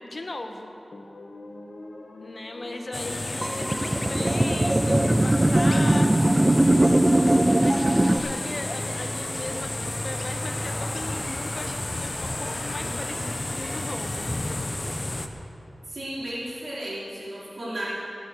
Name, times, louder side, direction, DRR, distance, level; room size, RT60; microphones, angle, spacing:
voice 1, 0.0-0.8 2.2-6.2 7.3-14.3, left 2 dB, 50° left, 5 dB, 1.2 m, -37 dB
sound 1, 0.9-15.1, left 2 dB, 75° left, 1.1 m, -43 dB
sound 2, 2.9-15.3, left 1 dB, 35° left, 0.9 m, -32 dB
sound 3, 3.4-8.2, right 1 dB, 25° right, 0.5 m, -20 dB
voice 2, 15.9-17.9, right 1 dB, 80° right, -7 dB, 3.9 m, -34 dB
19.0 x 7.1 x 6.6 m, 2.8 s
wide cardioid pair, 55°, 0 cm